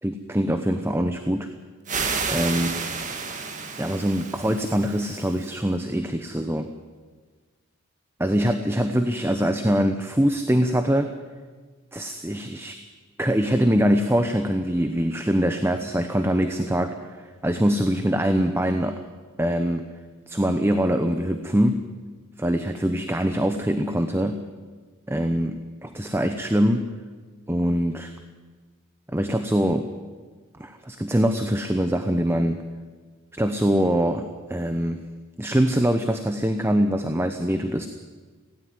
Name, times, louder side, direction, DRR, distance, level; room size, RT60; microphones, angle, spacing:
voice 1, 0.0-1.5 2.3-2.8 3.8-6.7 8.2-11.1 11.9-12.8 13.2-19.0 19.4-19.8 20.3-21.8 22.4-24.4 25.1-26.8 27.5-28.1 29.1-29.9 30.6-32.6 33.3-34.2 34.5-35.0 35.4-37.9, equal, 10° right, 8 dB, 0.8 m, -23 dB
sound 1, 1.9-5.5, right 4 dB, 35° right, 1.7 m, -31 dB
17.0 x 16.5 x 9.6 m, 1.4 s
head